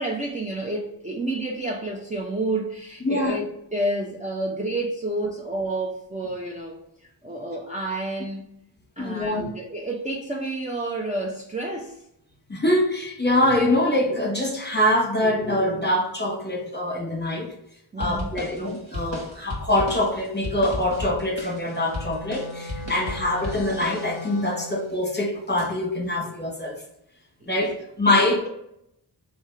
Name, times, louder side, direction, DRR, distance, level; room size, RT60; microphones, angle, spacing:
voice 1, 0.0-8.5 9.0-12.0 17.9-18.3 22.9-23.2 27.4-27.6, right 2 dB, 15° right, -2 dB, 0.6 m, -30 dB
voice 2, 3.0-3.4 9.0-9.5 12.5-17.5 18.0-26.8 27.5-28.5, left 1 dB, 20° left, 0 dB, 1.2 m, -24 dB
sound 1, 18.0-24.4, left 1 dB, 60° right, 1.4 m, -35 dB
Wind instrument woodwind instrument, 21.6-25.0, left 1 dB, 55° left, 0.6 m, -39 dB
3.5 x 2.8 x 4.5 m, 0.78 s
wide cardioid pair, 50°, 47 cm